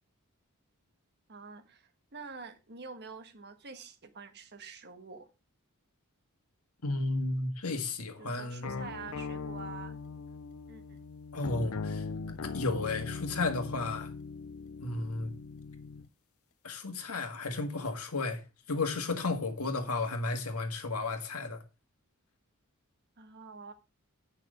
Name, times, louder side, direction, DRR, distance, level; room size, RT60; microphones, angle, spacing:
voice 1, 1.3-5.3 8.2-10.0 10.7-11.0 23.2-23.7, right 4 dB, 50° right, 1.3 m, -47 dB
voice 2, 6.8-8.8 11.3-12.1 12.4-14.1 14.8-15.3 16.6-21.6, left 3 dB, 85° left, 1.8 m, -33 dB
sound 1, 8.6-16.1, left 4 dB, 65° left, 0.5 m, -40 dB
8.7 x 6.1 x 5.0 m
head